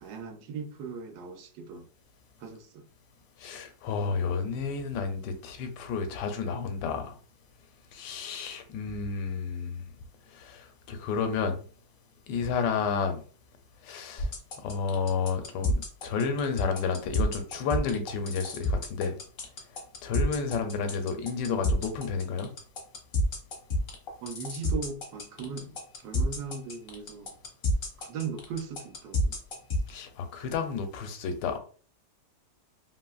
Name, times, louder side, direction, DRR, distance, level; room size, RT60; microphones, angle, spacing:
voice 1, 0.0-1.9 2.4-2.8 24.2-27.4 28.0-29.4, right 5 dB, 70° right, 1.1 m, -38 dB
voice 2, 3.4-7.2 7.9-9.9 10.3-11.6 12.3-13.2 13.8-14.3 14.6-19.2 20.0-22.5 29.9-31.6, left 5 dB, 75° left, 1.2 m, -31 dB
sound 1, 14.2-29.9, left 1 dB, 55° left, 0.6 m, -29 dB
3.0 x 2.7 x 2.3 m
omnidirectional pair, 1.9 m